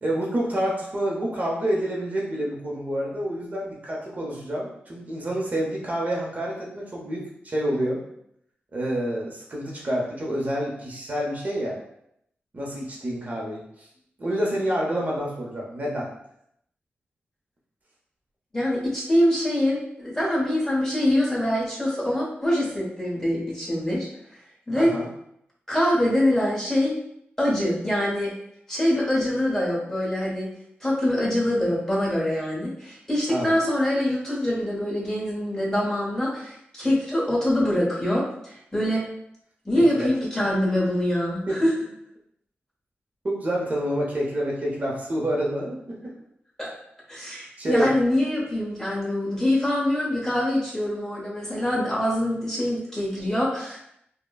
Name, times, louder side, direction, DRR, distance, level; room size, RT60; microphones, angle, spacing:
voice 1, 0.0-8.0 8.7-11.8 12.5-13.9 14.2-16.1 24.8-25.1 33.3-33.5 39.8-40.1 41.5-41.6 43.2-46.1 47.6-47.9, right 1 dB, 40° right, -3 dB, 0.8 m, -28 dB
voice 2, 18.5-24.1 24.7-24.9 25.7-27.0 27.4-28.3 28.7-30.5 30.8-39.0 39.6-41.7 46.6-46.7 47.1-53.8, left 1 dB, 15° left, -5 dB, 1.1 m, -24 dB
5.2 x 2.2 x 2.3 m, 0.75 s
wide cardioid pair, 100°, 4 cm